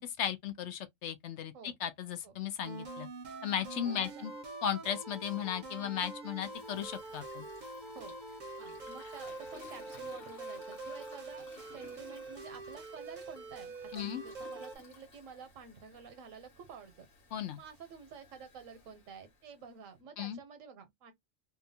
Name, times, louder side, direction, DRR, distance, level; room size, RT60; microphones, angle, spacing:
voice 1, 0.0-3.1 3.4-4.3 4.6-7.5 13.9-14.2 17.3-17.6 20.2-20.4, left 9 dB, 70° left, 0.8 m, -36 dB
sound 1, 2.6-14.8, right 2 dB, 45° right, 0.7 m, -45 dB
voice 2, 3.8-4.2 7.9-8.1 8.6-17.1 17.6-21.1, right 6 dB, 80° right, 1.1 m, -50 dB
Toilet flush, 6.5-19.9, left 4 dB, 90° left, 1.4 m, -58 dB
2.7 x 2.3 x 2.6 m
omnidirectional pair, 1.3 m